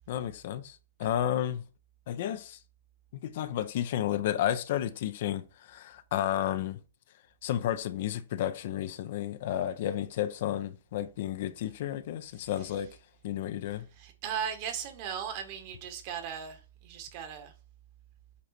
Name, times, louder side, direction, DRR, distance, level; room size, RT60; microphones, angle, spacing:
voice 1, 0.1-1.6 2.1-2.6 3.1-6.8 7.4-12.9 13.2-13.9, left 11 dB, 55° left, 0.7 m, -32 dB
voice 2, 14.0-17.5, right 8 dB, 45° right, 1.7 m, -37 dB
8.4 x 3.8 x 4.4 m
figure-of-eight pair, 115°, 0 cm